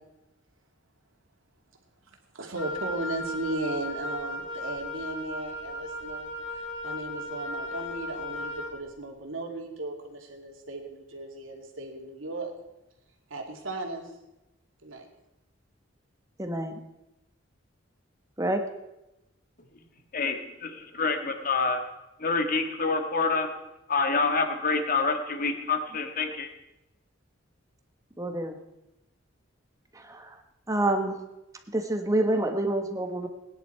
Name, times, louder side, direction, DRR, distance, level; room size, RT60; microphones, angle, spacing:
voice 1, 2.3-6.3 6.8-12.5 13.3-14.1 14.8-15.1, right 2 dB, 90° right, 2 dB, 2.5 m, -36 dB
Wind instrument woodwind instrument, 2.6-8.8, left 1 dB, 75° left, 2.0 m, -36 dB
voice 2, 16.4-16.8 18.4-18.6 28.2-28.6 30.0-30.3 30.7-31.2 31.7-33.3, right 1 dB, 15° right, 5 dB, 1.4 m, -27 dB
voice 3, 20.1-21.8 22.2-23.5 23.9-26.5, left 4 dB, 45° left, 6 dB, 1.6 m, -27 dB
20.5 x 10.5 x 4.6 m, 0.94 s
head